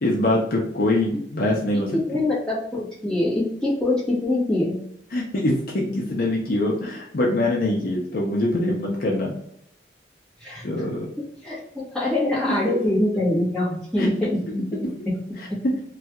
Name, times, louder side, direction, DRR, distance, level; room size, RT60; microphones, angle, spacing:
voice 1, 0.0-2.0 5.1-9.3 10.6-11.1 12.5-12.8 14.0-14.1 15.4-15.7, left 1 dB, 50° left, -1 dB, 0.6 m, -24 dB
voice 2, 2.1-4.8 10.4-10.7 11.4-15.1, left 1 dB, 5° left, -8 dB, 1.2 m, -24 dB
3.3 x 2.3 x 2.8 m, 0.72 s
head